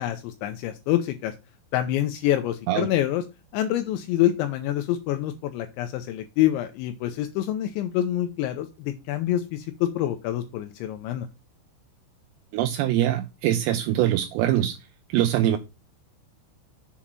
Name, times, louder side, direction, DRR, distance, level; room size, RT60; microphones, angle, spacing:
voice 1, 0.0-1.3 1.7-3.2 3.5-11.3, left 12 dB, 85° left, 7 dB, 2.8 m, -26 dB
voice 2, 12.5-14.8 15.1-15.6, right 12 dB, 85° right, 7 dB, 2.4 m, -23 dB
7.3 x 5.0 x 5.7 m, 0.27 s
omnidirectional pair, 5.7 m